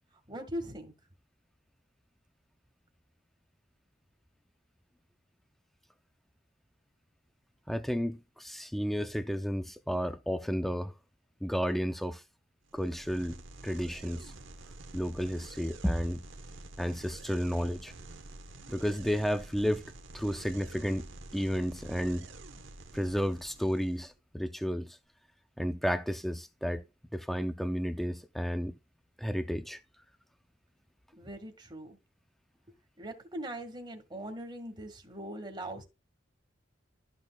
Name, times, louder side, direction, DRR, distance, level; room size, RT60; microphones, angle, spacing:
voice 1, 0.3-0.9 31.1-32.0 33.0-35.8, right 1 dB, 25° right, 1.8 m, -41 dB
voice 2, 7.7-10.9 11.4-12.2 12.7-14.3 14.9-16.2 16.8-17.9 18.7-19.8 20.1-21.1 21.3-22.3 22.9-25.0 25.6-26.8 27.1-28.8 29.2-29.8, equal, ahead, 0.5 m, -32 dB
sound 1, 12.7-24.1, right 2 dB, 85° right, 1.1 m, -49 dB
12.5 x 6.2 x 2.3 m
head